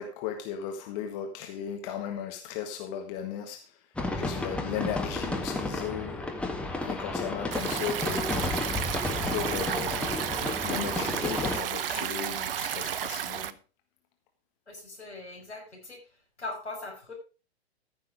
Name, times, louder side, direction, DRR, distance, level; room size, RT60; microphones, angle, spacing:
voice 1, 0.0-3.7 4.1-6.3 6.8-8.6 9.3-10.2 10.6-13.5, left 8 dB, 40° left, 1.8 m, -36 dB
sound 1, 4.0-11.6, left 2 dB, 5° left, 1.7 m, -32 dB
sound 2, 6.2-7.1 7.5-9.7 10.0-10.6, left 8 dB, 20° left, 2.4 m, -47 dB
Stream, 7.5-13.5, right 9 dB, 55° right, 0.9 m, -32 dB
voice 2, 14.7-17.1, left 2 dB, 85° left, 5.9 m, -41 dB
14.5 x 6.6 x 4.9 m
figure-of-eight pair, 110°, 33 cm